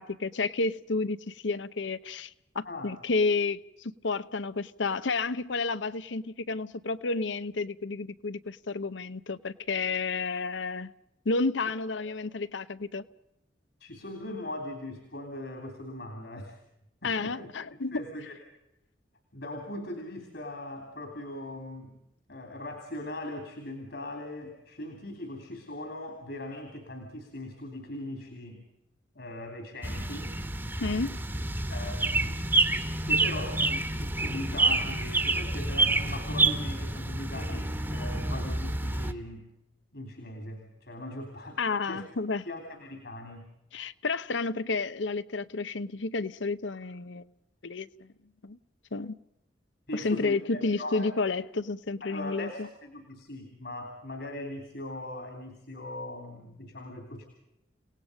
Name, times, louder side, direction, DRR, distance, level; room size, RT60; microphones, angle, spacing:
voice 1, 0.0-10.9 11.2-13.0 17.0-18.0 30.8-31.2 41.6-42.4 43.7-47.3 47.6-48.1 48.4-48.6 48.9-49.2 49.9-52.7, left 3 dB, 85° left, 0.8 m, -31 dB
voice 2, 13.8-16.6 17.0-17.5 17.9-18.3 19.3-22.0 22.3-28.6 29.1-30.3 31.7-32.5 33.1-39.5 39.9-42.0 42.4-43.5 49.9-51.1 52.0-57.2, left 1 dB, 65° left, 3.4 m, -40 dB
sound 1, 29.8-39.1, right 2 dB, 10° right, 1.2 m, -28 dB
29.5 x 18.0 x 5.2 m
head